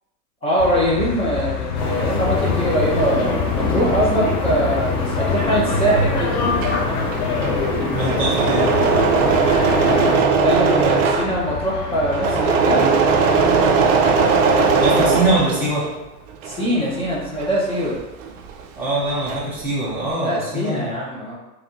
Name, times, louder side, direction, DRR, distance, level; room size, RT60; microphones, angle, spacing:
voice 1, 0.4-6.4 9.8-12.9 16.4-18.0 20.2-21.4, right 1 dB, 10° left, -6 dB, 0.9 m, -22 dB
sound 1, 0.6-15.5, left 7 dB, 80° left, 0.7 m, -30 dB
sound 2, 1.7-10.2, left 3 dB, 60° left, 1.2 m, -23 dB
Engine / Mechanisms, 6.3-16.0 16.3-18.7 18.9-19.6, right 5 dB, 55° right, 0.6 m, -19 dB
voice 2, 7.9-8.7 14.8-15.8 18.8-21.0, right 2 dB, 5° right, -8 dB, 0.3 m, -22 dB
3.4 x 2.8 x 3.8 m, 1.0 s
hypercardioid pair, 125°, 48 cm